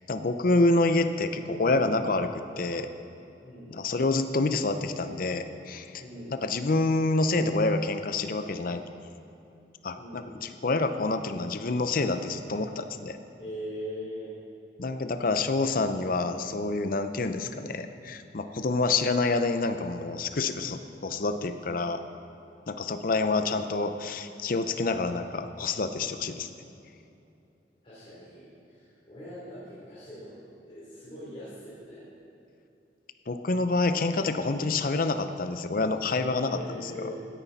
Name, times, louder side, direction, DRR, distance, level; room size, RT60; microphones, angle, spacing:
voice 1, 0.1-2.9 3.7-6.0 6.3-8.8 9.8-13.2 14.8-22.0 22.7-26.5 33.3-37.1, left 3 dB, 50° left, 9 dB, 0.6 m, -27 dB
voice 2, 6.0-6.3 10.0-10.3 13.4-14.3 27.8-30.3 30.7-32.0 36.4-37.2, equal, 35° left, -11 dB, 3.5 m, -41 dB
16.5 x 9.9 x 4.1 m, 2.7 s
head